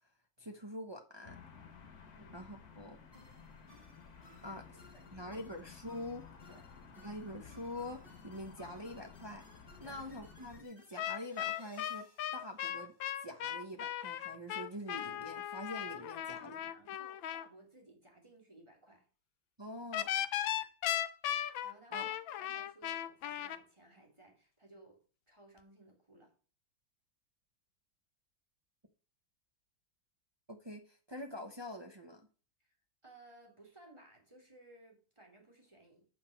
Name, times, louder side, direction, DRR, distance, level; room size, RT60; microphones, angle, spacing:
voice 1, 0.4-1.4 2.3-3.0 4.4-4.6 5.1-6.3 7.0-9.4 9.8-12.9 13.2-16.6 19.6-20.1 21.9-22.1 30.5-32.3, left 1 dB, 40° right, 0.3 m, -45 dB
sound 1, 1.2-10.6, left 6 dB, 50° left, 1.7 m, -55 dB
sound 2, 3.1-13.5, left 1 dB, 25° left, 2.7 m, -62 dB
voice 2, 4.9-5.4 6.5-6.6 9.8-10.0 16.1-19.1 21.6-25.0 25.3-26.3 32.6-32.8 33.0-36.1, right 2 dB, 15° right, 2.7 m, -60 dB
sound 3, 11.0-17.5 19.9-23.6, left 11 dB, 75° left, 1.4 m, -37 dB
7.6 x 5.7 x 5.9 m
omnidirectional pair, 2.2 m